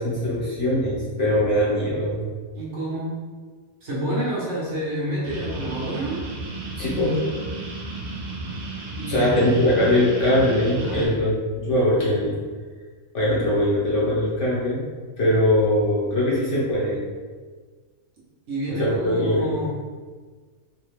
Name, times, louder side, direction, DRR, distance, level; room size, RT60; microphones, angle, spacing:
voice 1, 0.0-2.2 6.8-7.2 9.1-12.3 13.1-14.8 15.2-17.0 18.8-19.5, left 1 dB, 55° left, -7 dB, 1.3 m, -21 dB
voice 2, 2.5-3.1 3.8-6.2 9.0-9.7 10.8-11.2 18.5-19.7, right 1 dB, 55° right, -6 dB, 1.2 m, -29 dB
sound 1, 5.2-11.1, right 3 dB, 80° right, 0.4 m, -33 dB
4.1 x 2.4 x 3.1 m, 1.5 s
omnidirectional pair, 1.5 m